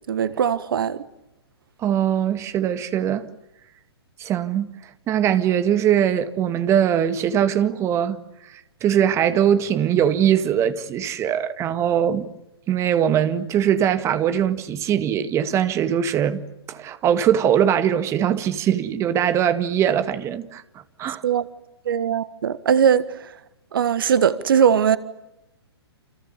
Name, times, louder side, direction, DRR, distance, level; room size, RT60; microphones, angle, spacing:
voice 1, 0.1-1.0 21.2-21.5 21.8-23.3 23.7-25.0, right 8 dB, 55° right, 1.6 m, -20 dB
voice 2, 1.8-3.3 4.2-4.7 5.1-8.2 8.8-12.3 12.7-16.4 16.7-20.6 21.0-21.2, right 9 dB, 20° right, 1.9 m, -21 dB
29.5 x 29.0 x 7.1 m
figure-of-eight pair, 120°, 14 cm